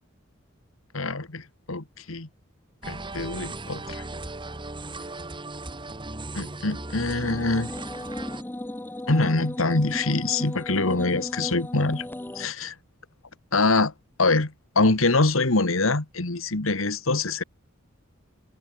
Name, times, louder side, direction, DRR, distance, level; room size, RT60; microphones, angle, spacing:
voice 1, 0.9-2.3 2.9-4.0 6.4-7.7 9.1-12.1 12.4-12.7 13.5-13.9 14.2-17.4, left 3 dB, 75° left, 1.9 m, -24 dB
sound 1, 2.8-8.4, right 2 dB, 25° right, 2.0 m, -37 dB
sound 2, 7.0-12.5, left 1 dB, 10° left, 0.5 m, -35 dB
head